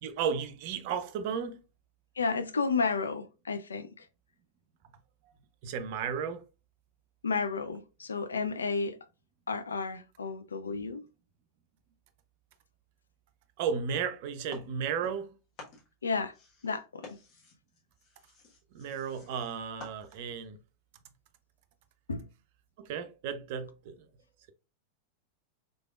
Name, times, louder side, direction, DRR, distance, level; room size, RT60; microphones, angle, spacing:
voice 1, 0.0-1.6 5.6-6.4 13.6-15.4 18.7-20.6 22.8-24.1, right 7 dB, 50° right, 0.5 m, -34 dB
voice 2, 2.2-4.1 7.2-9.0 9.5-11.1 16.0-16.3 16.6-17.2 22.1-22.3, left 4 dB, 75° left, 0.4 m, -32 dB
sound 1, 14.5-15.3 15.6-20.4, left 3 dB, 40° left, 1.2 m, -51 dB
3.8 x 3.3 x 2.3 m
figure-of-eight pair, 90°, 0 cm